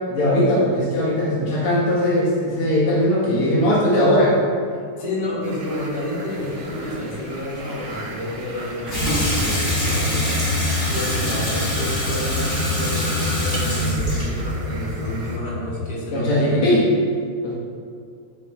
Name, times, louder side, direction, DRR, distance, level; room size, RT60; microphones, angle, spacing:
voice 1, 0.1-4.4 16.1-16.9 17.4-17.5, left 1 dB, 80° left, -6 dB, 2.3 m, -19 dB
voice 2, 4.7-10.4 10.9-16.7, left 1 dB, 50° left, -5 dB, 2.8 m, -30 dB
sound 1, 5.4-15.4, right 2 dB, 55° right, 1.4 m, -39 dB
sound 2, 6.3-12.8, equal, 10° right, 1.9 m, -38 dB
Water tap faucet / Sink (filling or washing), 8.9-15.9, left 1 dB, 30° left, 2.8 m, -23 dB
12.5 x 8.7 x 2.3 m, 2.3 s
omnidirectional pair, 2.4 m